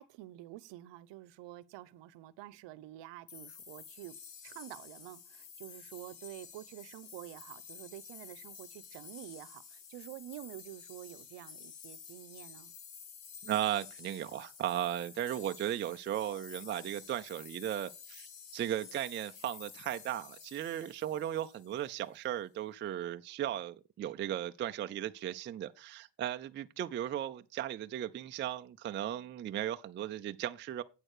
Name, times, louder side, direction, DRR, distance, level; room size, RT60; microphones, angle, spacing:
voice 1, 0.0-4.1 4.4-12.7, right 15 dB, 60° right, 0.8 m, -49 dB
sound 1, 3.3-22.0, left 7 dB, 65° left, 2.2 m, -51 dB
voice 2, 13.4-30.8, right 11 dB, 25° right, 0.4 m, -36 dB
8.9 x 6.3 x 4.8 m
cardioid pair, 115°, 50 cm